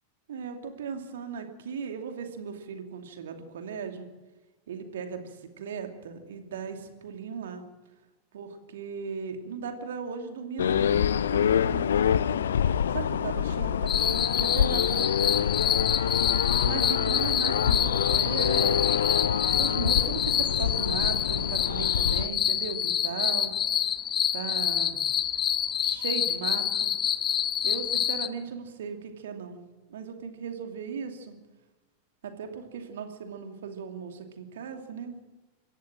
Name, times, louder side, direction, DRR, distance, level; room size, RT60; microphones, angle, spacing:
voice 1, 0.3-4.1 4.7-7.6 8.3-15.5 16.6-18.9 19.4-23.5 24.3-25.0 25.8-26.9 27.6-29.6 29.9-31.4 32.2-35.1, right 6 dB, 60° right, 5 dB, 2.6 m, -37 dB
sound 1, 10.6-22.3, left 8 dB, 65° left, 0.6 m, -26 dB
sound 2, 13.9-28.3, left 9 dB, 30° left, 0.9 m, -27 dB
26.0 x 14.0 x 7.5 m, 1.2 s
figure-of-eight pair, 90°, 0 cm